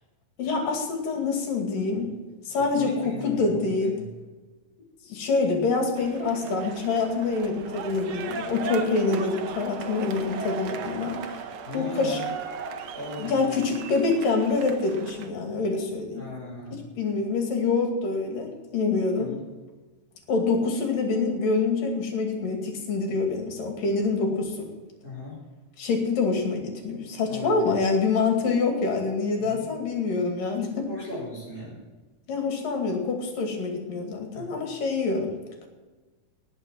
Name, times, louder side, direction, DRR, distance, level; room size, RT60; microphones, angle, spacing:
voice 1, 0.4-2.2 2.5-3.9 5.1-11.4 11.7-12.2 13.2-16.3 16.7-19.3 20.3-24.7 25.8-30.9 32.3-35.3, left 4 dB, 65° left, 3 dB, 3.9 m, -26 dB
voice 2, 2.5-4.1 11.6-12.3 12.9-13.6 16.1-16.9 19.2-19.4 25.0-25.4 27.3-27.7 29.4-29.6 30.9-31.8 34.3-34.5, left 1 dB, 30° left, -9 dB, 5.9 m, -38 dB
sound 1, 6.0-15.3, right 5 dB, 75° right, 1.6 m, -37 dB
18.5 x 6.7 x 7.7 m, 1.2 s
omnidirectional pair, 4.2 m